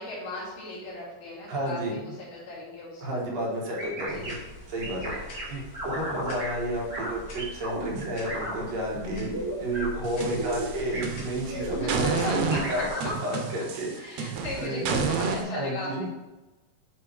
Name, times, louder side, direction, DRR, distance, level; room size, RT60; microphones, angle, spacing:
voice 1, 0.0-3.2 4.1-4.4 5.0-5.4 11.8-13.1 14.0-16.1, left 2 dB, 80° left, -8 dB, 3.7 m, -37 dB
voice 2, 1.5-2.0 3.0-4.4 4.7-14.3 14.6-14.9 15.5-16.1, right 1 dB, 60° right, -3 dB, 2.2 m, -32 dB
sound 1, 3.8-4.3 4.8-5.4 5.7-6.5 6.9-7.1 7.4-8.6 8.9-9.9 10.2-10.7 10.9-11.0 11.5-12.0 12.5-13.2, right 1 dB, 30° right, 2.1 m, -34 dB
sound 2, 4.1-12.9, left 2 dB, 50° left, 1.8 m, -44 dB
sound 3, 10.0-11.5 11.9-15.4, right 5 dB, 85° right, 1.4 m, -30 dB
8.7 x 3.4 x 3.3 m, 1.1 s
omnidirectional pair, 3.7 m